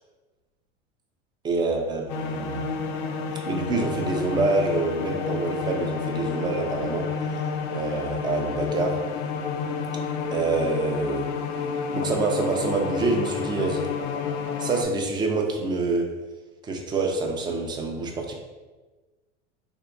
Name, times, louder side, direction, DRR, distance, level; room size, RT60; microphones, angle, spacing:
voice 1, 1.4-2.7 3.5-7.4 7.7-9.0 10.3-11.3 11.9-13.9 14.6-16.1 16.6-18.3, right 3 dB, 15° right, 2 dB, 0.4 m, -26 dB
sound 1, 2.1-14.8, left 5 dB, 60° left, 0.5 m, -30 dB
3.5 x 2.7 x 2.5 m, 1.3 s
hypercardioid pair, 100°, 36 cm